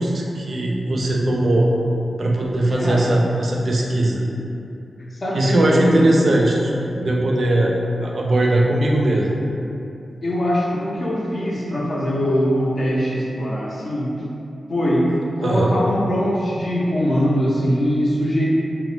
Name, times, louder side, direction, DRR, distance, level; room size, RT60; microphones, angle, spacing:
voice 1, 0.0-1.7 2.2-4.2 5.3-9.3 15.4-15.8, right 1 dB, 55° right, -2 dB, 0.4 m, -19 dB
voice 2, 2.7-3.1 5.2-6.1 10.2-14.2 14.7-18.5, equal, 45° left, -5 dB, 0.5 m, -22 dB
2.3 x 2.1 x 3.8 m, 2.7 s
wide cardioid pair, 120°, 0 cm